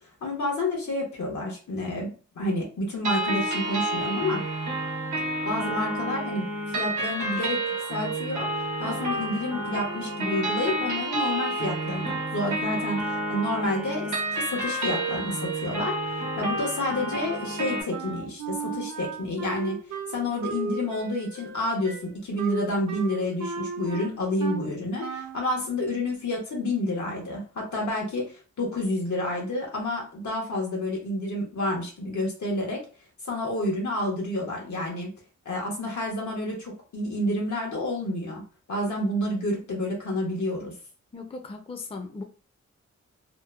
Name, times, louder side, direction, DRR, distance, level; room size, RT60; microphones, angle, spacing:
voice 1, 0.2-4.4 5.4-7.6 7.9-8.5 8.8-16.0 16.4-19.8 20.1-32.8 33.2-35.1 35.4-38.4 38.7-40.7, left 1 dB, 85° left, -1 dB, 1.0 m, -29 dB
sound 1, 3.0-17.8, right 1 dB, 90° right, 0.9 m, -30 dB
Wind instrument woodwind instrument, 17.9-24.7 25.0-25.4, right 5 dB, 65° right, 0.7 m, -35 dB
voice 2, 41.1-42.2, left 3 dB, 20° left, 3 dB, 0.5 m, -37 dB
2.8 x 2.1 x 2.3 m, 0.37 s
cardioid pair, 60°, 29 cm